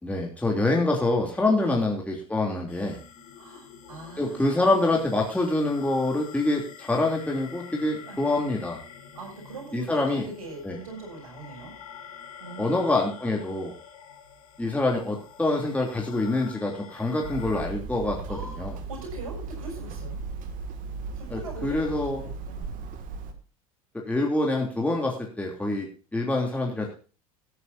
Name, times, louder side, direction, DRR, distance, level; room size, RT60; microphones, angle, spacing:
voice 1, 0.0-3.0 4.2-8.8 9.7-10.2 10.6-10.8 12.6-13.7 14.6-18.2 18.6-18.7 21.3-22.3 23.9-26.9, left 2 dB, 10° left, -1 dB, 3.1 m, -26 dB
sound 1, 2.7-17.7, left 7 dB, 75° left, 3.8 m, -47 dB
voice 2, 3.4-4.8 8.1-8.2 9.1-11.7 12.4-12.9 18.3-20.2 21.1-22.8, right 3 dB, 80° right, 1 dB, 6.9 m, -42 dB
Hammer, 17.2-23.3, right 4 dB, 50° right, 2.2 m, -36 dB
17.5 x 9.6 x 2.7 m, 0.36 s
hypercardioid pair, 80°, 18 cm